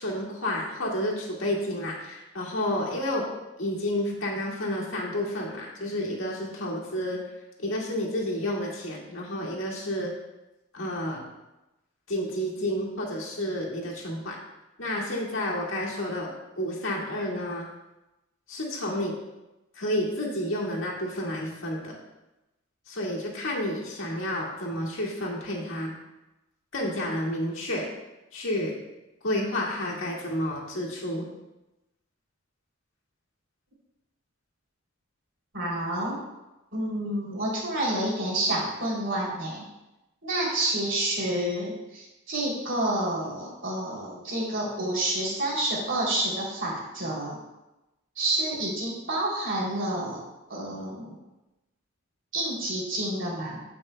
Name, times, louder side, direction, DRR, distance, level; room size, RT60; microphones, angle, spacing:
voice 1, 0.0-3.3 3.6-7.2 7.6-10.1 10.7-11.2 12.1-14.4 14.8-17.7 18.5-19.2 19.8-22.0 22.9-26.0 26.7-27.9 28.3-28.8 29.2-31.3, left 1 dB, 65° left, -3 dB, 1.9 m, -30 dB
voice 2, 35.5-36.2 36.7-39.6 40.2-47.4 48.2-50.2 50.5-51.1 52.3-53.6, right 1 dB, 60° right, -4 dB, 3.0 m, -29 dB
16.0 x 5.5 x 2.2 m, 0.98 s
head